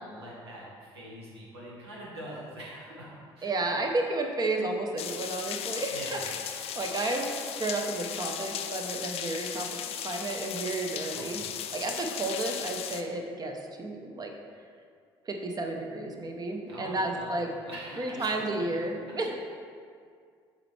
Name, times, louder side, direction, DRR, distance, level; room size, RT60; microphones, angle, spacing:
voice 1, 0.1-3.5 5.9-6.3 11.1-11.5 16.7-18.4 19.0-19.4, equal, 80° right, -5 dB, 1.3 m, -44 dB
voice 2, 3.4-6.2 6.8-9.7 10.0-11.4 11.7-14.3 15.3-17.5 18.0-19.4, right 2 dB, 30° right, 3 dB, 0.9 m, -32 dB
sound 1, 5.0-13.0, left 9 dB, 50° left, 0.4 m, -36 dB
7.7 x 4.4 x 3.3 m, 2.2 s
figure-of-eight pair, 55°, 13 cm